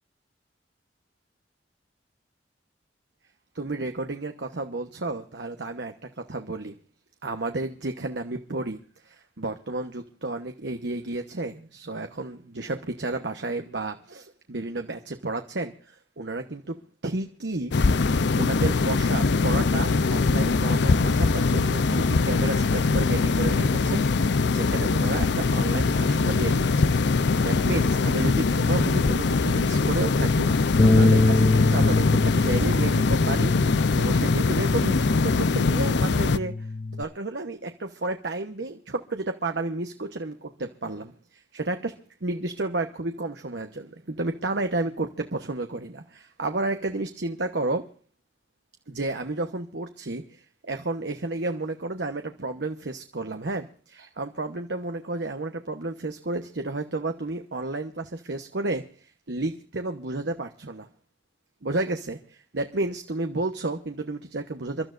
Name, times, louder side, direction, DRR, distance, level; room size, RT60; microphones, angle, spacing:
voice 1, 3.5-6.7 7.2-16.8 17.0-17.7 18.3-26.9 27.4-30.6 30.8-33.5 34.0-36.7 37.0-47.9 48.9-60.9 61.6-64.9, right 2 dB, 70° right, 6 dB, 1.1 m, -32 dB
sound 1, 17.7-36.4, left 4 dB, 70° left, 0.6 m, -22 dB
Bass guitar, 30.8-37.0, left 2 dB, 25° left, 0.5 m, -24 dB
29.0 x 13.0 x 2.5 m, 0.42 s
head